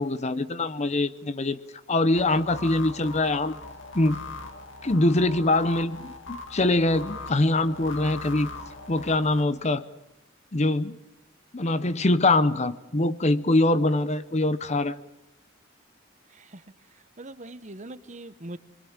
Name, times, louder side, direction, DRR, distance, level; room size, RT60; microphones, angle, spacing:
voice 1, 0.0-1.6 1.9-3.6 3.9-4.2 4.8-8.5 8.9-9.8 10.5-11.0 11.5-15.0, left 2 dB, 35° left, 12 dB, 0.8 m, -23 dB
sound 1, 2.1-9.4, left 3 dB, 75° left, 2.3 m, -40 dB
voice 2, 16.3-16.6 16.9-18.6, right 1 dB, 35° right, 12 dB, 1.0 m, -42 dB
25.5 x 22.5 x 7.4 m, 0.92 s
head